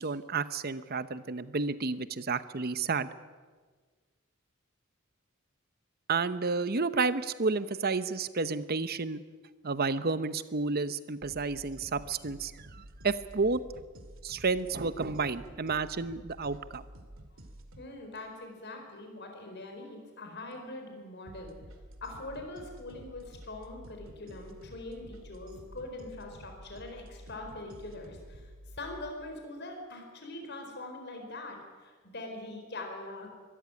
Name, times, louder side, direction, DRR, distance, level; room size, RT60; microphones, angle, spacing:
voice 1, 0.0-3.1 6.1-9.2 9.6-13.6 14.2-16.8, right 4 dB, 50° right, 14 dB, 0.9 m, -31 dB
sound 1, 11.2-17.9 21.3-29.1, right 1 dB, 70° right, 2.2 m, -50 dB
voice 2, 17.8-21.6 22.0-33.3, left 2 dB, 55° left, 3 dB, 4.4 m, -43 dB
22.5 x 13.5 x 9.8 m, 1.5 s
head